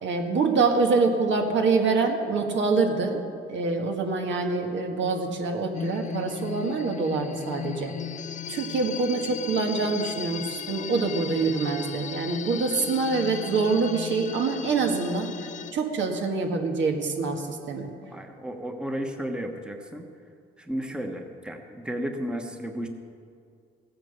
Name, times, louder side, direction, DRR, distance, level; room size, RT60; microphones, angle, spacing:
voice 1, 0.0-3.2 3.5-7.9 8.5-15.3 15.7-17.9, right 4 dB, 70° right, 3 dB, 1.8 m, -25 dB
sound 1, 5.7-15.7, left 8 dB, 40° left, 0.5 m, -36 dB
voice 2, 18.1-20.0 20.6-22.9, equal, 5° right, 4 dB, 1.2 m, -33 dB
15.0 x 9.0 x 6.9 m, 2.3 s
cardioid pair, 90°, 20 cm